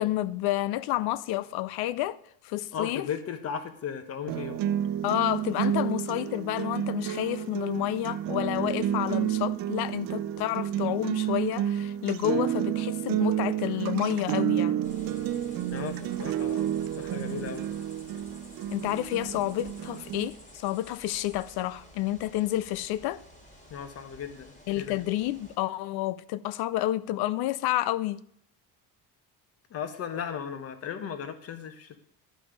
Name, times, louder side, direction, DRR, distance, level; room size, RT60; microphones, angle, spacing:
voice 1, 0.0-2.2 2.4-3.1 5.0-14.8 18.7-23.2 24.7-28.2, left 15 dB, 70° left, 0.5 m, -30 dB
voice 2, 2.7-4.6 15.7-17.7 23.7-25.0 29.7-32.0, left 7 dB, 35° left, 0.9 m, -36 dB
sound 1, 4.3-20.3, right 11 dB, 60° right, 0.6 m, -30 dB
sound 2, 14.8-25.6, equal, 15° left, 1.7 m, -52 dB
11.5 x 5.2 x 5.1 m
cardioid pair, 175°, 40 cm